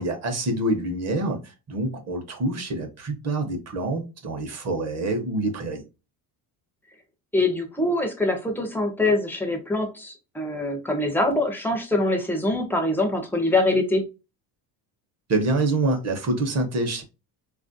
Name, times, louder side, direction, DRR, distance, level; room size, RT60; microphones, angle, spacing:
voice 1, 0.0-5.8 15.3-17.0, right 2 dB, 35° right, 0.8 m, -26 dB
voice 2, 7.3-14.0, left 2 dB, 5° left, 0.4 m, -24 dB
4.0 x 2.5 x 2.5 m
cardioid pair, 160°, 47 cm